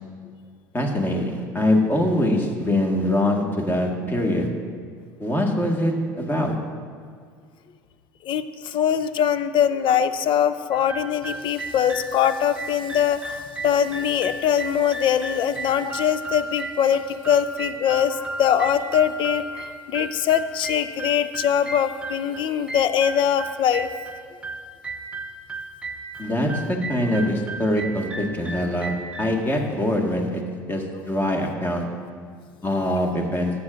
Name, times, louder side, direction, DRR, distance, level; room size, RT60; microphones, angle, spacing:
voice 1, 0.7-4.5 5.2-6.5 18.1-18.2 22.4-22.6 26.2-30.4 30.7-31.8 32.6-33.5, left 1 dB, 20° left, 1 dB, 1.6 m, -23 dB
voice 2, 8.3-13.4 13.6-23.9 32.9-33.0, left 9 dB, 50° left, 13 dB, 0.5 m, -22 dB
sound 1, 10.7-29.4, right 2 dB, 10° right, 0.9 m, -35 dB
14.0 x 8.8 x 2.5 m, 2.1 s
hypercardioid pair, 80°, 11 cm